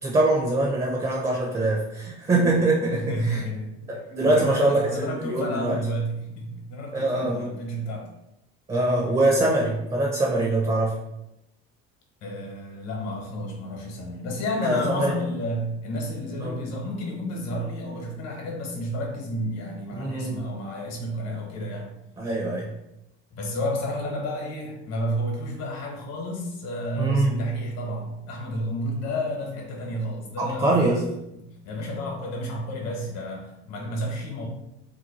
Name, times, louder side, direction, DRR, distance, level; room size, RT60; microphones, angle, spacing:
voice 1, 0.0-3.4 3.9-5.8 6.9-7.5 8.7-11.0 14.6-15.1 16.4-16.6 19.9-20.4 22.2-22.7 27.0-27.4 30.4-31.0, right 2 dB, 20° right, -3 dB, 0.8 m, -23 dB
voice 2, 2.9-3.9 4.2-8.1 12.2-21.9 23.3-30.8 31.3-34.5, equal, 60° left, 1 dB, 1.1 m, -31 dB
2.9 x 2.2 x 4.1 m, 0.86 s
cardioid pair, 115°, 30 cm